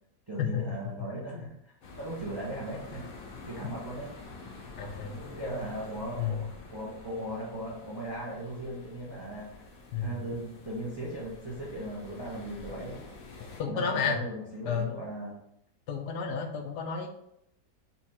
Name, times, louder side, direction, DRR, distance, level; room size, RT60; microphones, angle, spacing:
voice 1, 0.3-3.0 3.5-4.1 5.1-9.6 10.0-13.0 13.7-15.4, right 1 dB, 25° right, -5 dB, 0.5 m, -38 dB
sound 1, 1.8-13.6, left 3 dB, 60° left, 1.2 m, -47 dB
voice 2, 4.8-5.2 6.2-6.5 9.9-10.2 13.6-14.2 14.6-14.9 15.9-17.1, left 7 dB, 75° left, 2 dB, 1.3 m, -31 dB
4.3 x 2.5 x 4.2 m, 0.75 s
omnidirectional pair, 1.8 m